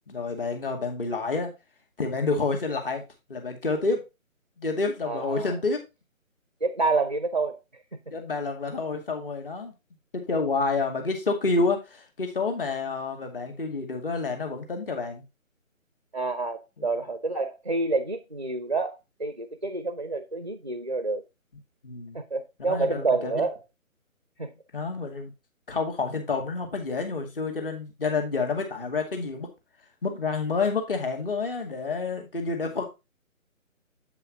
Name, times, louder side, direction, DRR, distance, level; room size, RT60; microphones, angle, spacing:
voice 1, 0.1-1.5 2.0-3.0 3.3-4.0 4.6-5.8 8.1-9.7 10.1-15.2 16.8-16.9 21.8-22.2 22.6-23.5 24.7-25.3 25.7-29.5 30.0-32.9, left 3 dB, 40° left, 2.2 m, -29 dB
voice 2, 5.1-5.5 6.6-7.6 16.1-18.9 19.2-21.2 22.1-23.6 24.4-24.5, right 3 dB, 35° right, 0.5 m, -28 dB
7.7 x 5.4 x 4.0 m
figure-of-eight pair, 150°, 41 cm